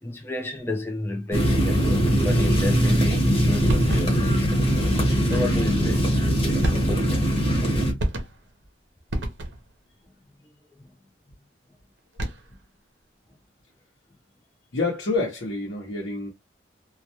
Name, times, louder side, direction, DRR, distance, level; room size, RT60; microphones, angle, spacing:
voice 1, 0.0-4.6 5.3-6.1 10.8-10.9, left 2 dB, 15° left, 0.5 m, -31 dB
sound 1, 1.3-7.9, equal, 30° left, 0.9 m, -21 dB
sound 2, 3.7-4.3 5.3-5.7 6.6-7.2 8.0-8.6 9.1-9.8 12.0-12.6, right 1 dB, 80° right, 0.7 m, -30 dB
voice 2, 14.7-16.3, left 3 dB, 80° left, 0.8 m, -27 dB
2.2 x 2.2 x 2.8 m
head